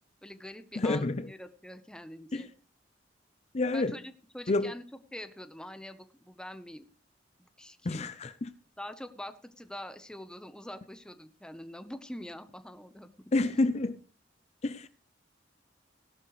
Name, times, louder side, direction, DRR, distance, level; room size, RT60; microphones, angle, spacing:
voice 1, 0.2-2.5 3.7-4.8 5.1-6.8 7.4-8.1 8.8-13.1, left 1 dB, 5° left, 9 dB, 0.9 m, -44 dB
voice 2, 0.8-1.3 2.3-2.5 3.5-3.9 4.5-4.7 7.8-8.5 13.3-14.0 14.6-14.9, left 2 dB, 35° left, 12 dB, 0.5 m, -28 dB
17.0 x 12.0 x 3.2 m, 0.40 s
head